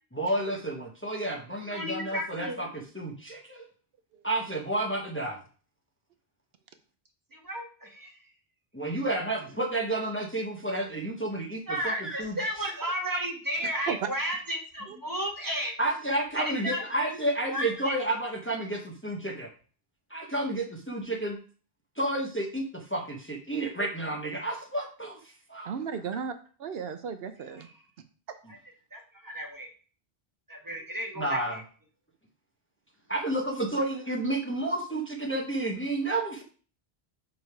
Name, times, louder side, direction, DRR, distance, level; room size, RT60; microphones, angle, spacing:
voice 1, 0.1-3.6 4.2-5.4 8.7-12.4 15.8-19.5 20.1-21.4 22.0-25.2 25.5-25.7 31.2-31.6 33.1-36.4, right 1 dB, 10° left, 0 dB, 1.0 m, -31 dB
voice 2, 1.7-2.6 7.3-8.2 11.7-15.7 16.3-16.8 17.1-17.2 17.5-17.9 28.5-28.6 28.9-29.7 30.5-31.6, equal, 20° right, 1 dB, 1.3 m, -33 dB
voice 3, 13.6-14.1 14.9-15.0 25.6-26.3 26.6-27.7, right 7 dB, 75° right, 8 dB, 0.8 m, -34 dB
5.3 x 4.9 x 4.7 m, 0.40 s
omnidirectional pair, 1.0 m